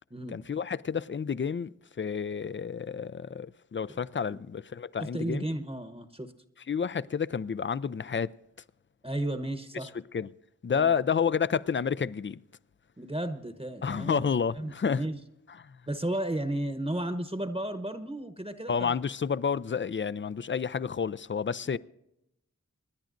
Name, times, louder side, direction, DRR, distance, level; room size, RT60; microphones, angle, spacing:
voice 1, 0.3-5.5 6.7-8.3 9.8-10.3 10.6-12.4 13.8-15.0 15.6-15.8 18.7-21.8, left 6 dB, 40° left, 0.4 m, -30 dB
voice 2, 5.0-6.3 9.0-9.9 10.7-10.9 13.0-14.3 14.6-15.2 15.9-18.9 21.7-21.8, right 1 dB, 20° right, 1.0 m, -34 dB
27.0 x 10.5 x 2.6 m
wide cardioid pair, 50°, 30 cm